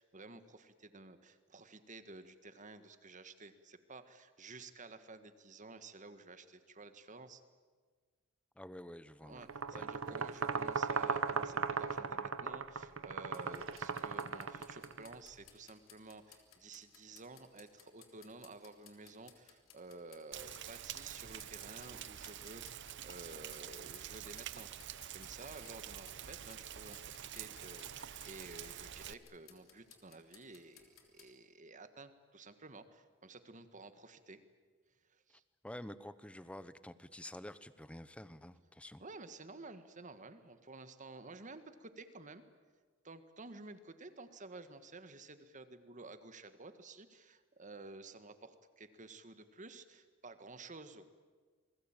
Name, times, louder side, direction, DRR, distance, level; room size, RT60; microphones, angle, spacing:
voice 1, 0.0-7.4 9.2-34.4 35.1-35.4 39.0-42.4 43.0-51.0, right 3 dB, 40° right, 10 dB, 1.6 m, -52 dB
voice 2, 8.6-9.4 9.7-10.2 35.6-39.0, left 1 dB, 5° left, 14 dB, 0.9 m, -49 dB
sound 1, 9.4-15.1, right 5 dB, 85° right, 1.2 m, -37 dB
sound 2, 13.3-31.3, left 8 dB, 90° left, 3.4 m, -64 dB
Rain, 20.3-29.1, right 10 dB, 60° right, 0.9 m, -47 dB
28.0 x 21.0 x 9.0 m, 1.5 s
head